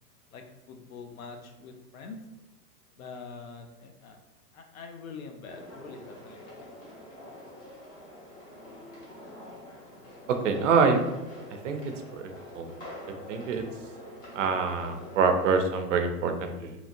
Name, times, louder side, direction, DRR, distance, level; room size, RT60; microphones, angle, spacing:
voice 1, 0.3-2.2 3.0-4.2 4.5-6.6, left 5 dB, 55° left, 5 dB, 0.6 m, -44 dB
sound 1, 5.5-15.5, left 1 dB, 15° left, 0.8 m, -46 dB
voice 2, 10.3-11.0 11.6-11.8 12.1-12.7 13.3-13.6 14.3-16.8, right 5 dB, 50° right, 5 dB, 0.5 m, -25 dB
2.8 x 2.4 x 2.7 m, 1.0 s
figure-of-eight pair, 110°, 49 cm